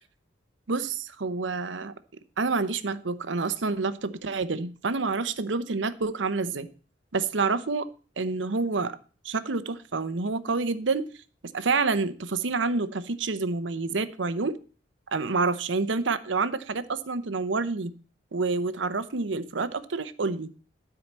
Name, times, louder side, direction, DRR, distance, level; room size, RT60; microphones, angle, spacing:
voice 1, 0.7-1.9 2.4-6.7 7.1-7.9 8.2-9.0 9.2-11.1 11.5-14.6 15.1-17.9 18.3-20.5, right 4 dB, 70° right, 13 dB, 0.8 m, -28 dB
13.0 x 4.8 x 7.3 m, 0.39 s
head